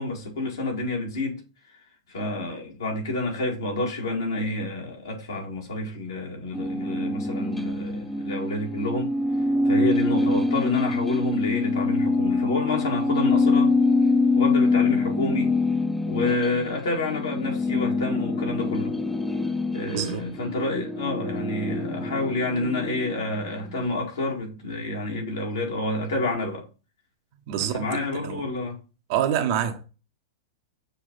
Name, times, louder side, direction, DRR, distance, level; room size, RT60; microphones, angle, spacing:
voice 1, 0.0-1.4 2.1-9.1 9.7-13.7 14.3-15.5 16.1-18.9 19.7-26.6 27.6-28.8, left 2 dB, 75° left, 2.1 m, -29 dB
sound 1, 6.5-23.8, left 3 dB, 5° left, 0.5 m, -25 dB
voice 2, 19.9-20.3 27.5-28.4 29.1-29.8, right 10 dB, 55° right, 0.9 m, -27 dB
6.8 x 2.6 x 5.3 m
hypercardioid pair, 105°, 2 cm